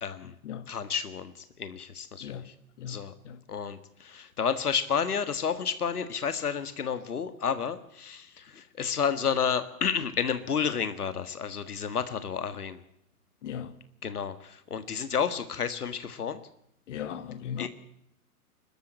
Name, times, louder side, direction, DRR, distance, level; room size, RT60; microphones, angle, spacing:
voice 1, 0.0-0.3 0.7-2.5 2.9-3.1 3.5-12.8 14.0-16.4 17.6-17.7, left 7 dB, 80° left, 1.8 m, -31 dB
voice 2, 2.8-3.4 13.4-13.7 16.9-17.7, left 9 dB, 55° left, 1.9 m, -37 dB
23.0 x 13.0 x 8.9 m
hypercardioid pair, 120°, 45 cm